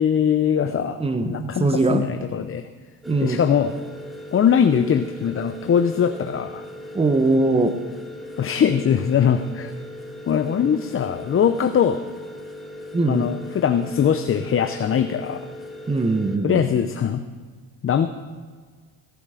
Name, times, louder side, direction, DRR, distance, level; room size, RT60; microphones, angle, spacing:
voice 1, 0.0-2.7 3.2-3.7 4.3-6.7 8.4-9.7 10.3-12.0 13.1-15.4 16.4-17.2 17.8-18.1, left 8 dB, 35° left, 9 dB, 0.7 m, -21 dB
voice 2, 1.0-2.1 3.1-3.4 6.9-7.7 12.9-13.3 15.9-16.6, right 3 dB, 15° right, 8 dB, 1.0 m, -21 dB
sound 1, 3.0-16.4, left 1 dB, ahead, 2.4 m, -38 dB
17.0 x 12.0 x 5.0 m, 1.5 s
cardioid pair, 100°, 38 cm